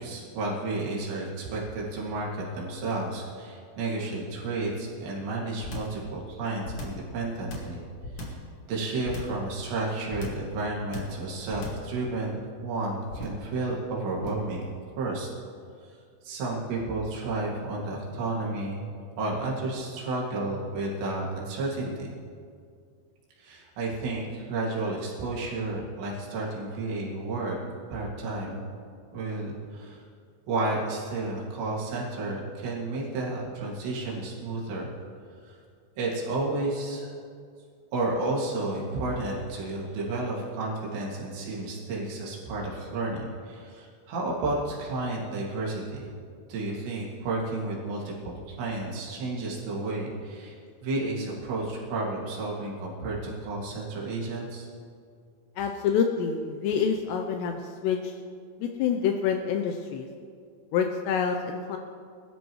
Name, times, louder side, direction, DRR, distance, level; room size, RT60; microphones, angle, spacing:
voice 1, 0.0-7.8 8.2-8.3 8.7-14.6 15.0-15.3 16.2-18.9 19.2-22.1 23.4-27.6 27.9-28.7 29.1-30.0 30.5-34.9 35.4-35.5 36.0-37.1 37.9-46.1 46.5-54.7, right 2 dB, 70° right, -4 dB, 4.4 m, -32 dB
sound 1, 5.6-6.0 6.6-7.1 7.5-8.5 9.0-9.4 10.1-10.5 10.9-11.2 11.5-11.9 13.1-13.5 14.2-14.5, left 1 dB, 50° left, 1.8 m, -37 dB
voice 2, 55.6-58.1 58.6-60.1 60.7-61.8, left 7 dB, 80° left, 4 dB, 2.5 m, -27 dB
22.0 x 12.5 x 3.1 m, 2.2 s
omnidirectional pair, 5.5 m